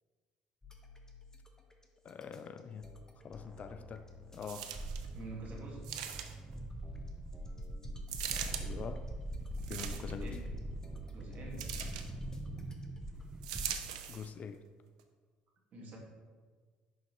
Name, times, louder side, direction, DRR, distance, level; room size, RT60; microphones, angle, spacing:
sound 1, 0.6-13.3, left 4 dB, 15° left, 1.0 m, -54 dB
voice 1, 2.0-3.0 3.2-4.7 8.5-9.1 9.7-10.4 13.6-13.8 14.1-14.6, left 6 dB, 40° left, 10 dB, 0.4 m, -45 dB
sound 2, 4.4-5.1 5.8-6.5 8.1-8.6 9.6-10.3 11.6-12.1 13.4-14.3 15.0-15.1, right 9 dB, 75° right, 0.5 m, -40 dB
sound 3, 4.7-14.1, right 1 dB, 20° right, 0.4 m, -42 dB
voice 2, 5.1-5.9 9.9-10.5 11.1-11.7 15.7-16.0, right 2 dB, 50° right, -2 dB, 1.9 m, -47 dB
10.5 x 3.8 x 3.0 m, 1.5 s
hypercardioid pair, 60°, 4 cm